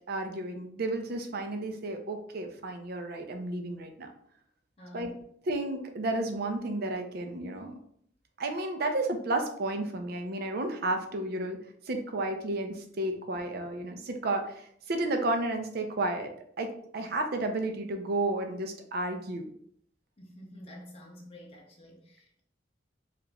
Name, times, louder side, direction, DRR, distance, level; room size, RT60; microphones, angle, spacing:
voice 1, 0.1-4.1 4.9-5.1 5.5-7.7 8.4-11.6 11.9-16.3 16.6-19.5, right 2 dB, 55° right, 5 dB, 0.5 m, -32 dB
voice 2, 4.8-5.2 20.2-22.4, equal, 30° left, -2 dB, 0.6 m, -49 dB
2.9 x 2.4 x 3.3 m, 0.66 s
head